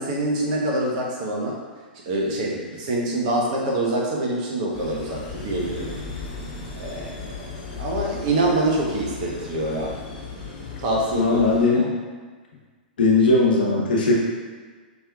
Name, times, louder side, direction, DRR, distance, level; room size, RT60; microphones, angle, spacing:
voice 1, 0.0-1.6 2.1-6.0 6.8-7.4 7.8-9.9 10.8-11.4 11.7-11.9, right 1 dB, 50° right, -2 dB, 1.0 m, -25 dB
sound 1, 4.7-11.7, left 4 dB, 45° left, 1.2 m, -36 dB
voice 2, 11.1-11.9 13.0-14.2, left 3 dB, 70° left, -4 dB, 1.0 m, -18 dB
5.3 x 3.1 x 2.4 m, 1.5 s
figure-of-eight pair, 105°, 5 cm